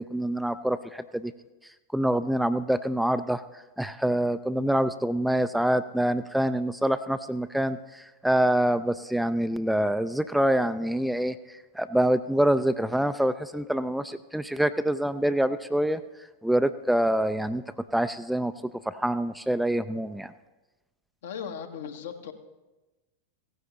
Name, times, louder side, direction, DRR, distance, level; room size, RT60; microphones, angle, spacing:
voice 1, 0.0-1.3 1.9-3.4 3.8-16.0 16.4-17.6 17.9-18.5 18.9-20.3, right 1 dB, ahead, 11 dB, 0.3 m, -26 dB
voice 2, 21.2-22.3, left 7 dB, 65° left, 6 dB, 1.0 m, -37 dB
16.5 x 9.5 x 3.0 m, 1.1 s
figure-of-eight pair, 90°, 0 cm